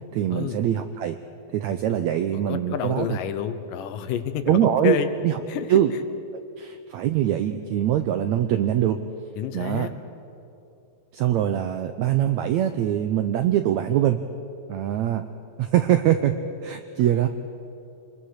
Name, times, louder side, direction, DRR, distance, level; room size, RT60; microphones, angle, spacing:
voice 1, 0.1-1.2 1.5-3.2 4.5-5.0 5.2-5.4 5.7-5.9 6.3-9.0 9.5-9.9 11.1-14.2 14.7-15.3 15.6-16.4 16.6-17.3, right 11 dB, 85° right, 8 dB, 1.6 m, -23 dB
voice 2, 2.5-4.6 4.8-5.1 5.5-5.7 9.4-9.9, left 9 dB, 75° left, 10 dB, 2.4 m, -28 dB
26.0 x 21.5 x 6.5 m, 2.7 s
omnidirectional pair, 4.1 m